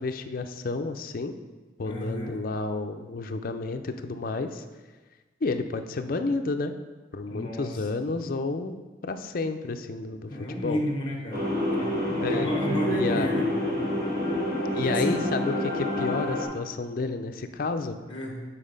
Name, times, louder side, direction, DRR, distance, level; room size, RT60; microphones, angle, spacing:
voice 1, 0.0-1.4 1.8-4.6 5.4-6.7 7.1-10.8 12.2-12.5 12.9-13.3 14.7-18.0, left 3 dB, 50° left, 7 dB, 0.5 m, -30 dB
voice 2, 1.8-2.3 7.3-7.7 10.3-11.5 11.8-13.5 14.8-15.2 18.1-18.4, equal, 30° left, 0 dB, 1.1 m, -31 dB
sound 1, 11.3-16.5, left 1 dB, 55° right, 1.5 m, -28 dB
7.5 x 4.0 x 5.1 m, 1.2 s
head